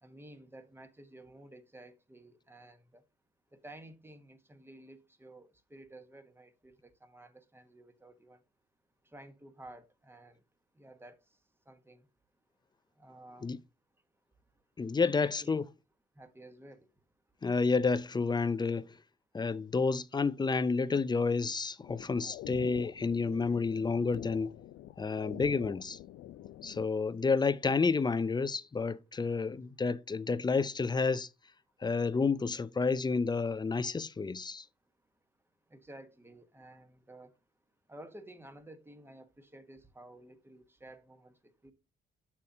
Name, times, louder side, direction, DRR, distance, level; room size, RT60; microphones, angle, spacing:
voice 1, 0.0-3.0 3.5-8.4 9.1-10.4 10.8-11.2 11.7-12.0 13.0-13.5 15.0-15.5 16.2-16.9 35.7-37.3 37.9-41.7, right 1 dB, 10° right, 1.3 m, -53 dB
voice 2, 14.8-15.6 17.4-19.0 19.3-24.5 25.0-26.0 26.6-31.3 31.8-34.7, left 4 dB, 20° left, 0.5 m, -30 dB
sound 1, 21.8-26.9, left 13 dB, 80° left, 0.5 m, -46 dB
7.1 x 6.4 x 2.7 m
cardioid pair, 90°, 20 cm